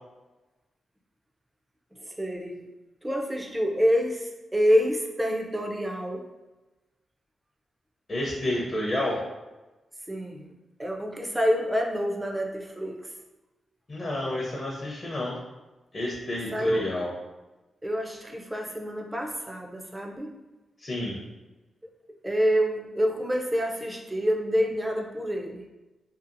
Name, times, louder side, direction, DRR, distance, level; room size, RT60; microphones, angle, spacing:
voice 1, 2.0-2.6 3.0-6.3 10.1-10.5 10.8-13.1 16.5-16.9 17.8-20.3 22.2-25.6, equal, 15° right, 1 dB, 0.4 m, -27 dB
voice 2, 8.1-9.2 13.9-15.4 15.9-17.1 20.8-21.2, left 1 dB, 35° left, -3 dB, 0.5 m, -30 dB
2.6 x 2.4 x 2.5 m, 1.1 s
cardioid pair, 95°, 0 cm